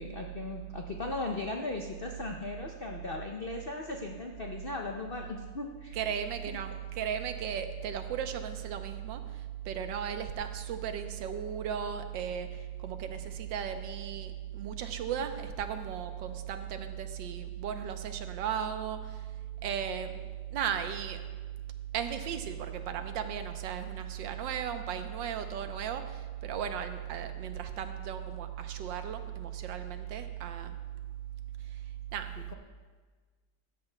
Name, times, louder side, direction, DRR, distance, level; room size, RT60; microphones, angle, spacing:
voice 1, 0.0-6.0, left 2 dB, 80° left, 2 dB, 0.5 m, -37 dB
voice 2, 5.9-19.3 19.6-21.2 21.9-30.8 31.6-31.8 32.1-32.3, right 8 dB, 90° right, 8 dB, 1.5 m, -36 dB
15.5 x 12.5 x 2.2 m, 1.5 s
omnidirectional pair, 2.0 m